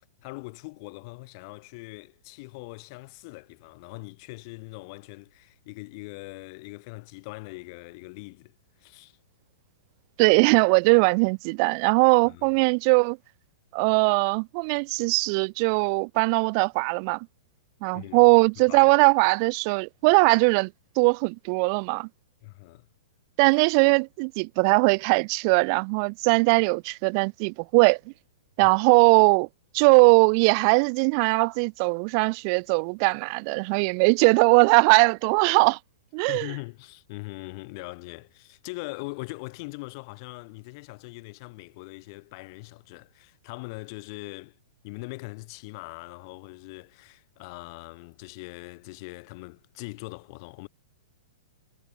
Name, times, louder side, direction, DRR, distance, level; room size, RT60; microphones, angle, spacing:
voice 1, 0.2-8.5 8.8-9.2 12.3-12.5 17.9-18.9 22.4-22.9 28.6-28.7 36.3-44.6 44.8-50.7, left 27 dB, 45° left, 6.8 m, -41 dB
voice 2, 10.2-13.2 13.7-17.3 17.8-20.7 21.0-22.1 23.4-28.0 28.6-29.5 29.7-35.8 36.1-36.5, right 37 dB, 40° right, 1.7 m, -20 dB
hypercardioid pair, 140°, 3 cm